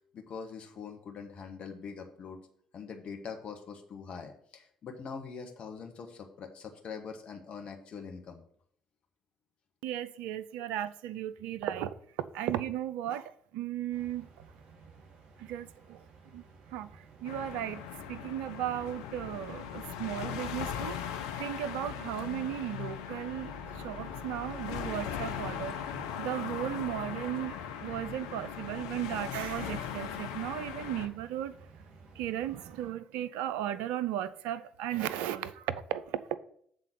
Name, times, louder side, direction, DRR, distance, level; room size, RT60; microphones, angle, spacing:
voice 1, 0.1-2.4 2.7-8.4, left 5 dB, 50° left, 1.2 m, -43 dB
voice 2, 9.8-11.9 12.3-14.3 15.4-16.0 16.3-16.4 16.7-17.8 18.1-31.5 32.2-36.4, right 11 dB, 70° right, 0.4 m, -36 dB
sound 1, 13.9-32.9, right 4 dB, 55° right, 1.9 m, -55 dB
sound 2, 17.2-31.1, left 8 dB, 80° left, 0.7 m, -39 dB
7.6 x 3.8 x 6.6 m
hypercardioid pair, 50°, 3 cm